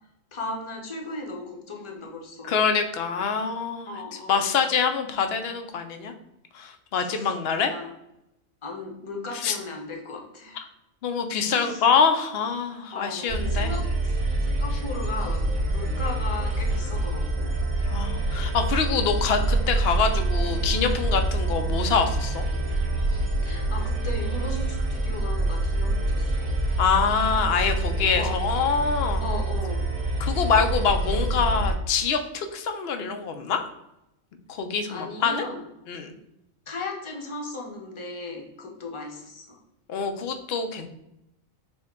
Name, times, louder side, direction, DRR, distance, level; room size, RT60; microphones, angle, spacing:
voice 1, 0.3-2.5 3.9-4.4 6.9-7.3 7.7-7.9 8.6-10.7 11.5-11.9 12.9-17.5 23.4-26.5 28.2-28.4 29.2-29.8 34.9-35.7 36.7-39.6, left 3 dB, 25° left, 0 dB, 0.7 m, -36 dB
voice 2, 2.4-3.9 4.3-6.1 6.5-7.7 9.3-9.6 11.0-13.7 17.9-22.4 26.8-29.2 30.2-33.6 34.5-35.5 35.9-36.1 39.9-40.9, left 6 dB, 60° left, 7 dB, 0.7 m, -25 dB
sound 1, 13.3-31.7, right 2 dB, 30° right, 1.6 m, -26 dB
6.2 x 2.3 x 3.5 m, 0.86 s
omnidirectional pair, 1.4 m